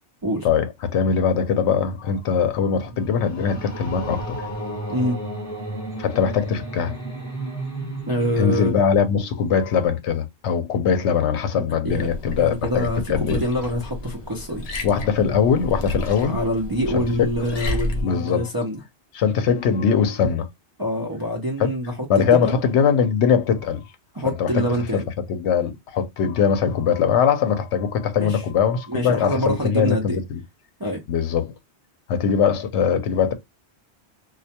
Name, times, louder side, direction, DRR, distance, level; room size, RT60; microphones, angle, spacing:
voice 1, 0.4-4.4 6.0-7.0 7.5-7.6 8.4-13.4 14.8-16.4 16.9-17.0 18.0-18.5 19.1-20.5 21.6-21.7 22.1-23.9 24.2-24.6 24.9-25.0 25.3-30.4 31.1-31.5 32.1-33.3, left 7 dB, 80° left, 0.9 m, -21 dB
sound 1, 2.2-9.5, right 1 dB, 15° left, 1.0 m, -34 dB
voice 2, 4.9-5.3 8.1-8.8 11.8-12.1 12.4-14.7 16.3-18.8 20.8-22.6 24.1-25.0 28.2-28.4 28.9-30.2 30.8-31.0, equal, 35° right, 0.3 m, -25 dB
Liquid, 11.9-18.0, left 1 dB, 45° left, 0.5 m, -31 dB
2.3 x 2.1 x 2.7 m
omnidirectional pair, 1.1 m